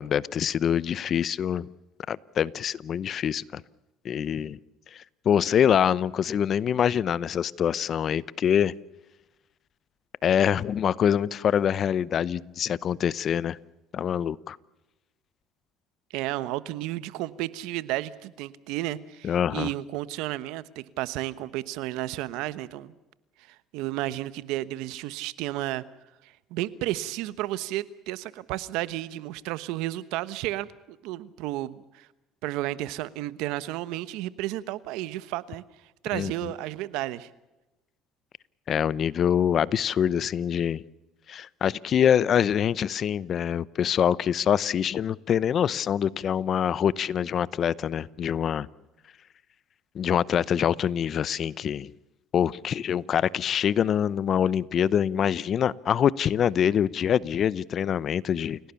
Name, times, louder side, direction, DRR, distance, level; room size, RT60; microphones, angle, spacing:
voice 1, 0.0-1.7 2.1-3.6 4.0-4.6 5.2-8.7 10.2-13.6 13.9-14.6 19.2-19.7 36.1-36.5 38.7-40.8 41.3-48.7 49.9-51.9 52.3-58.6, left 9 dB, 45° left, 20 dB, 0.8 m, -25 dB
voice 2, 16.1-22.9 23.5-25.8 26.2-32.1 32.4-35.6 36.0-37.3, right 15 dB, 80° right, 16 dB, 1.1 m, -32 dB
29.5 x 17.0 x 7.1 m, 1.0 s
supercardioid pair, 100°, 0 cm